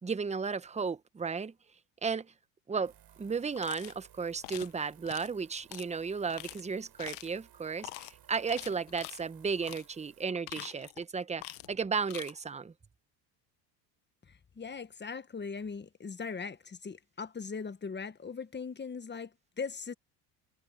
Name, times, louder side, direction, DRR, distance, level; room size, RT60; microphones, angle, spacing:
voice 1, 0.0-1.5 2.0-2.3 2.7-2.9 3.2-12.7, right 5 dB, 15° right, 0.9 m, -34 dB
sound 1, 2.8-10.3, right 11 dB, 55° right, 5.3 m, -61 dB
sound 2, 3.6-4.0 4.4-4.7 5.1-5.3 5.7-5.9 6.3-6.6 7.0-7.4 7.8-8.1 8.5-9.2 9.6-9.9 10.3-11.0 11.4-11.8 12.0-12.3, left 23 dB, 80° left, 1.2 m, -45 dB
voice 2, 14.3-19.9, left 5 dB, 20° left, 1.4 m, -40 dB
supercardioid pair, 90°, 47 cm